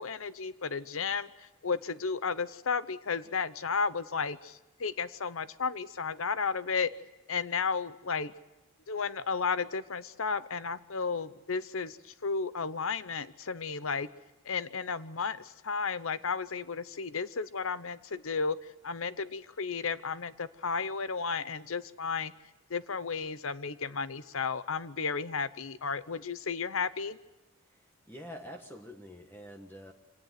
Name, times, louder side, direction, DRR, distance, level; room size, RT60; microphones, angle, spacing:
voice 1, 0.0-6.9 7.3-8.3 8.9-14.1 14.5-18.6 18.8-22.3 22.7-27.2, left 5 dB, 65° left, 15 dB, 0.8 m, -33 dB
voice 2, 27.6-29.9, equal, 10° left, 3 dB, 1.4 m, -47 dB
25.5 x 18.5 x 9.3 m, 1.0 s
head